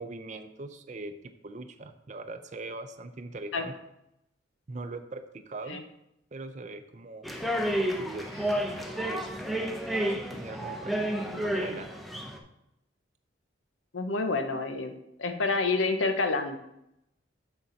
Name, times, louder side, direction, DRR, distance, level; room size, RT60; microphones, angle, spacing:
voice 1, 0.0-3.7 4.7-5.8 6.3-7.3 8.0-9.3 10.3-11.9, right 2 dB, 40° right, 8 dB, 0.5 m, -41 dB
sound 1, 7.2-12.4, equal, ahead, 0.7 m, -31 dB
Speech synthesizer, 7.6-11.0, left 2 dB, 45° left, 1.8 m, -52 dB
voice 2, 13.9-14.9 15.2-16.6, left 3 dB, 90° left, 7 dB, 0.9 m, -28 dB
6.9 x 6.8 x 4.0 m, 0.82 s
head